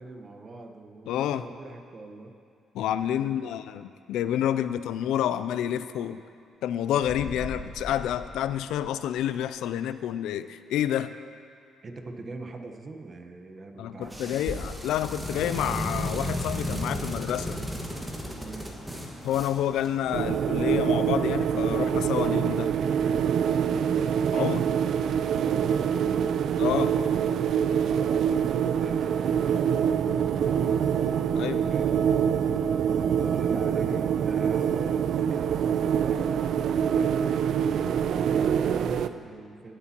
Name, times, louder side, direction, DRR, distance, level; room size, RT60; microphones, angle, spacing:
voice 1, 0.0-2.3 3.1-3.6 4.6-4.8 11.8-14.7 18.3-18.7 22.9-23.2 25.4-26.3 27.7-30.9 31.5-32.1 33.1-39.8, right 3 dB, 40° right, 4 dB, 1.1 m, -42 dB
voice 2, 1.1-1.5 2.7-6.2 6.6-11.1 13.8-17.6 19.2-22.7 24.3-24.7 26.6-27.0 31.3-31.6, left 11 dB, 85° left, 13 dB, 0.3 m, -29 dB
sound 1, 7.0-9.3, left 1 dB, 25° left, 1.1 m, -40 dB
sound 2, 14.0-20.5, equal, 5° right, 1.7 m, -34 dB
sound 3, 20.1-39.1, right 8 dB, 70° right, 0.3 m, -25 dB
19.0 x 8.4 x 2.9 m, 2.3 s
cardioid pair, 90°, 0 cm